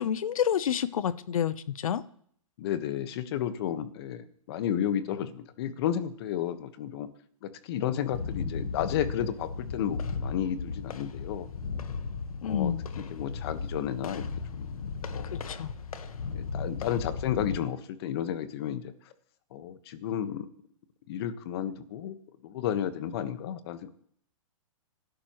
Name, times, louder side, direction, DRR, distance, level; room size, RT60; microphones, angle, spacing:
voice 1, 0.0-2.0 12.4-12.8 15.2-15.7, left 9 dB, 75° left, 15 dB, 0.9 m, -29 dB
voice 2, 2.6-7.1 7.4-11.5 12.4-14.3 14.6-14.7 15.1-15.4 16.3-18.9 19.5-20.5 21.1-22.2 22.4-23.9, left 10 dB, 45° left, 11 dB, 1.4 m, -32 dB
sound 1, 8.1-17.6, left 5 dB, 90° left, 1.5 m, -36 dB
26.5 x 11.5 x 3.1 m, 0.62 s
hypercardioid pair, 155°, 18 cm